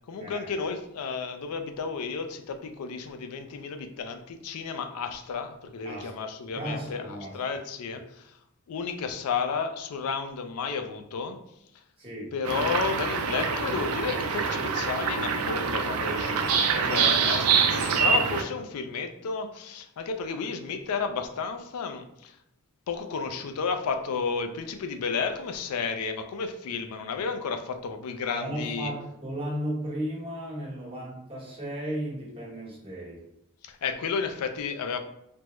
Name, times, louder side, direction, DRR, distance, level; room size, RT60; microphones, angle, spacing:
voice 1, 0.1-8.4 8.7-11.4 12.3-22.4 22.9-28.9 33.6-35.0, left 5 dB, 85° left, 7 dB, 0.4 m, -32 dB
voice 2, 6.5-7.4 7.9-8.0 12.0-12.3 16.8-17.0 17.3-17.5 28.3-33.2, right 1 dB, 25° right, -5 dB, 1.0 m, -35 dB
sound 1, 12.4-18.4, right 6 dB, 75° right, 0.4 m, -25 dB
3.5 x 2.0 x 2.9 m, 0.80 s
head